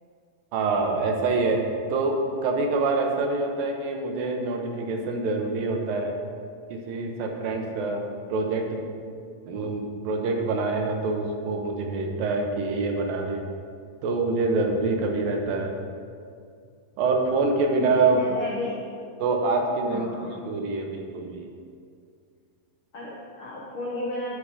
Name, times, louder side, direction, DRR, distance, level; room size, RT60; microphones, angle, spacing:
voice 1, 0.5-1.6 1.9-2.2 2.4-6.1 6.7-8.0 8.3-8.8 9.5-13.4 14.0-15.7 17.0-18.2 19.2-21.5, right 3 dB, 80° right, 2 dB, 2.6 m, -25 dB
voice 2, 18.1-18.9 19.9-20.5 22.9-24.4, left 2 dB, 80° left, -5 dB, 1.1 m, -33 dB
11.5 x 5.2 x 4.9 m, 2.2 s
omnidirectional pair, 4.1 m